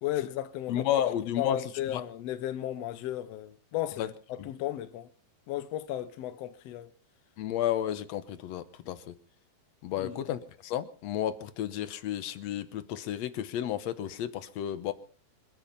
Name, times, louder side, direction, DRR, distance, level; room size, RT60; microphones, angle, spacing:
voice 1, 0.0-5.1 5.5-6.9 9.9-10.2, left 12 dB, 85° left, 1.4 m, -35 dB
voice 2, 0.7-1.6 1.9-2.0 4.0-4.1 7.4-9.1 9.8-14.9, left 11 dB, 65° left, 1.8 m, -32 dB
26.0 x 9.0 x 5.4 m
omnidirectional pair, 4.0 m